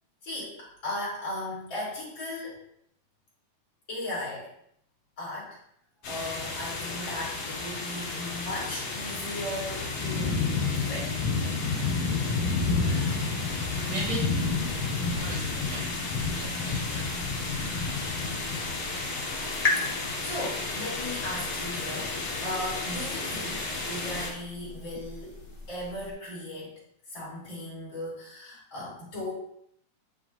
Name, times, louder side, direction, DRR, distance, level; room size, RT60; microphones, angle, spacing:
voice 1, 0.2-2.6 3.9-4.5 5.2-5.6 6.0-11.3 19.2-19.3 20.2-26.8 27.1-29.3, left 1 dB, 40° left, -6 dB, 3.6 m, -37 dB
sound 1, 6.0-24.3, left 3 dB, 85° left, 3.9 m, -31 dB
voice 2, 12.7-13.2 13.7-14.3 15.1-15.9 16.3-17.1, right 3 dB, 65° right, -3 dB, 2.5 m, -38 dB
sound 2, 13.4-26.1, left 2 dB, 65° left, 0.5 m, -39 dB
9.3 x 7.3 x 2.5 m, 0.69 s
omnidirectional pair, 3.5 m